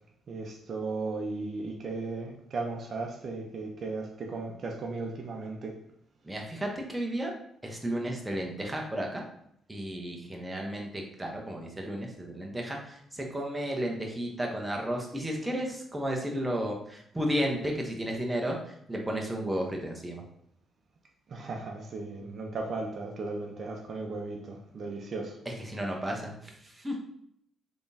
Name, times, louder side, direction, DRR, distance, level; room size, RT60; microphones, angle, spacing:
voice 1, 0.3-5.8 21.3-25.4, right 3 dB, 50° right, 1 dB, 0.6 m, -36 dB
voice 2, 6.2-7.3 7.6-9.2 9.7-20.2 25.5-27.0, equal, 10° right, 0 dB, 0.8 m, -33 dB
3.6 x 3.5 x 2.7 m, 0.72 s
cardioid pair, 90°, 0 cm